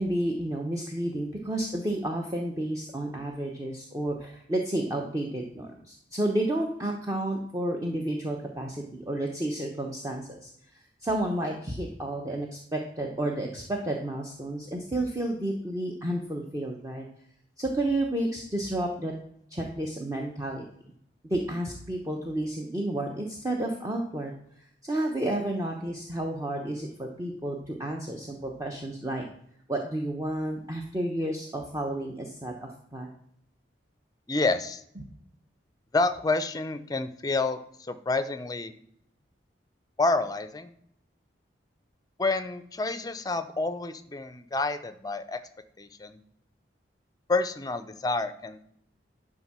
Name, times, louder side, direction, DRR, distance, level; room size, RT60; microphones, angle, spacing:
voice 1, 0.0-10.5 11.0-17.1 17.6-19.1 19.5-20.6 21.3-24.3 24.8-29.2 29.7-33.1 35.0-35.1, right 1 dB, 20° right, 1 dB, 0.8 m, -31 dB
voice 2, 34.3-34.8 35.9-38.7 40.0-40.7 42.2-45.4 45.8-46.2 47.3-48.6, left 3 dB, 20° left, 12 dB, 0.5 m, -28 dB
10.5 x 3.7 x 6.0 m, 0.70 s
head